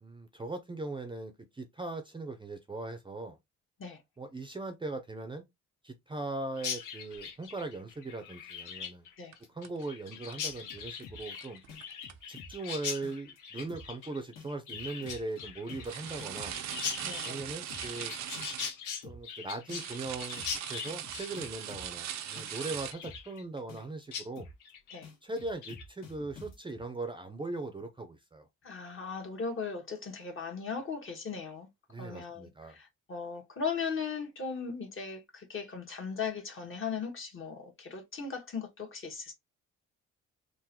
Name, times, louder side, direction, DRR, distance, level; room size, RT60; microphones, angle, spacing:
voice 1, 0.0-3.4 4.2-5.4 5.8-9.1 9.5-11.6 12.3-16.6 17.2-18.1 19.0-24.5 25.2-28.5 31.9-32.8, right 2 dB, 15° right, 0.6 m, -39 dB
Chirp tweet, 6.6-23.8 24.1-24.3 24.6-25.0 25.4-25.8, left 7 dB, 85° left, 1.0 m, -41 dB
sound 1, 9.3-9.4 9.6-9.8 10.2-10.3 10.6-11.0 11.3-12.1 13.7-13.8 15.8-18.7 19.7-22.9, right 11 dB, 65° right, 0.5 m, -40 dB
sound 2, 10.4-11.4 11.7-12.7 13.0-13.4 13.7-14.0 14.4-16.7 17.0-18.0 18.4-18.7 19.0-19.4 19.7-22.0 22.4-23.4 23.7-24.0 24.4-24.7 25.0-26.8, left 3 dB, 60° left, 1.7 m, -49 dB
voice 2, 17.0-17.4 24.9-25.1 28.6-31.7 32.0-39.3, left 5 dB, 45° left, 1.5 m, -38 dB
3.8 x 2.6 x 2.9 m
cardioid pair, 90°, 30 cm